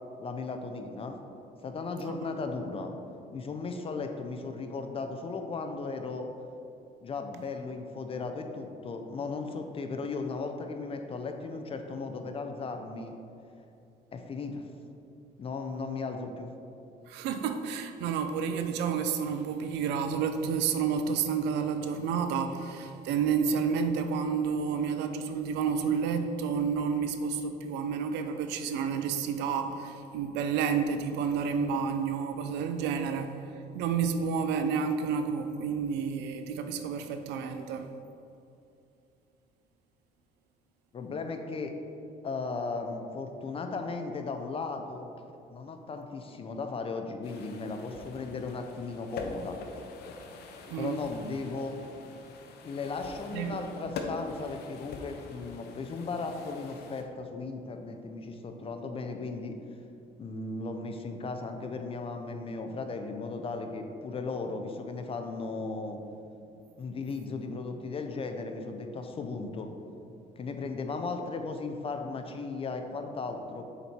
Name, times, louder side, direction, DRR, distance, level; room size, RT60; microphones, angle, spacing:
voice 1, 0.2-1.2 1.6-2.9 3.3-6.3 7.0-13.2 14.1-14.6 15.4-16.5 40.9-41.7 42.2-45.1 45.5-49.6 50.8-51.8 52.6-59.5 60.2-66.0 66.8-69.7 70.4-73.6, left 4 dB, 35° left, 5 dB, 0.6 m, -36 dB
voice 2, 17.1-33.3 33.7-37.9 50.7-51.0 53.3-53.6, right 6 dB, 90° right, 7 dB, 0.6 m, -30 dB
sound 1, 47.2-57.0, left 3 dB, 75° left, 0.8 m, -44 dB
6.7 x 4.5 x 4.4 m, 2.6 s
cardioid pair, 110°, 17 cm